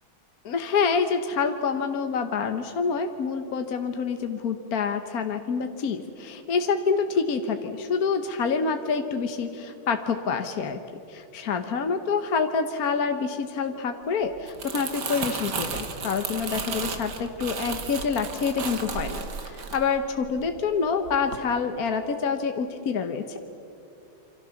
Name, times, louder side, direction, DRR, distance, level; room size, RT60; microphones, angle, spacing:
voice 1, 0.4-10.8 11.1-23.4, left 5 dB, 50° left, 6 dB, 1.4 m, -27 dB
Crumpling crinkling, 14.3-20.7 21.1-21.3, right 5 dB, 55° right, 2.2 m, -34 dB
27.5 x 25.5 x 7.1 m, 2.7 s
omnidirectional pair, 2.3 m